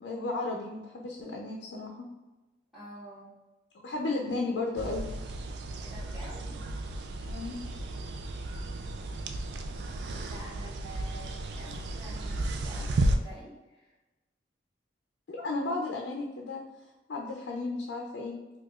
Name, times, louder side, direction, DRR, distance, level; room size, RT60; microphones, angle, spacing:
voice 1, 0.0-2.1 3.8-5.1 7.2-7.6 15.3-16.6 17.1-18.4, left 3 dB, 80° left, 0 dB, 0.4 m, -34 dB
voice 2, 2.7-3.3 5.8-6.7 10.2-13.9, right 1 dB, ahead, -15 dB, 1.0 m, -48 dB
sound 1, 4.8-13.2, right 1 dB, 75° right, 0.3 m, -33 dB
4.7 x 2.3 x 2.3 m, 1.1 s
head